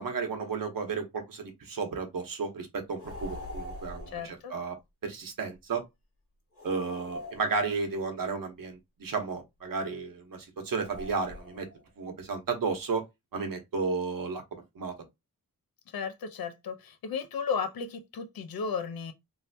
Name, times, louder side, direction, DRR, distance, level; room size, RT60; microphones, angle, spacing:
voice 1, 0.0-4.8 5.0-5.8 6.6-11.7 12.0-13.0 13.3-14.4 14.8-14.9, right 4 dB, 65° right, 1.0 m, -33 dB
sound 1, 3.0-4.3 6.6-8.0 10.7-11.8, equal, 40° left, 1.2 m, -42 dB
voice 2, 4.1-4.5 15.9-19.1, left 6 dB, 80° left, 0.7 m, -34 dB
3.2 x 2.8 x 2.7 m
wide cardioid pair, 165°, 35 cm